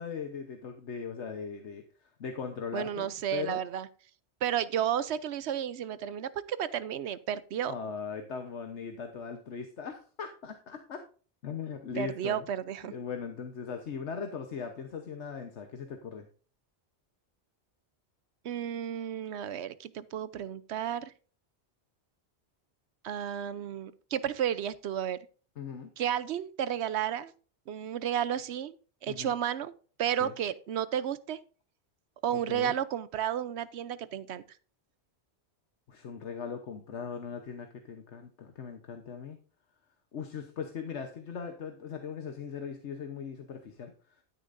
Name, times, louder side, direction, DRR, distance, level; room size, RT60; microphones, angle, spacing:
voice 1, 0.0-1.8 2.2-3.6 7.7-11.0 11.4-12.4 12.9-16.3 25.6-25.9 29.1-29.4 30.2-30.3 32.5-32.7 35.9-39.4 40.1-43.9, left 6 dB, 85° left, 5 dB, 1.3 m, -39 dB
voice 2, 2.7-3.9 4.4-7.7 12.0-12.9 18.4-21.1 23.0-25.2 26.0-27.3 27.7-28.7 29.0-29.7 30.0-31.4 32.2-34.4, right 10 dB, 75° right, 16 dB, 0.9 m, -32 dB
12.0 x 10.0 x 2.6 m, 0.40 s
omnidirectional pair, 1.1 m